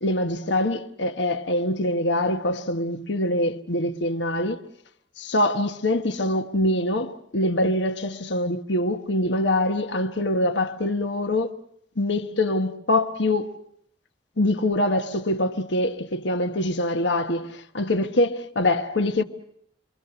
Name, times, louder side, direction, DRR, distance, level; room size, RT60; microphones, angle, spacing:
voice 1, 0.0-4.6 5.2-11.5 12.0-13.6 14.4-19.2, left 1 dB, 70° left, 1.2 m, -24 dB
28.0 x 24.0 x 6.9 m
head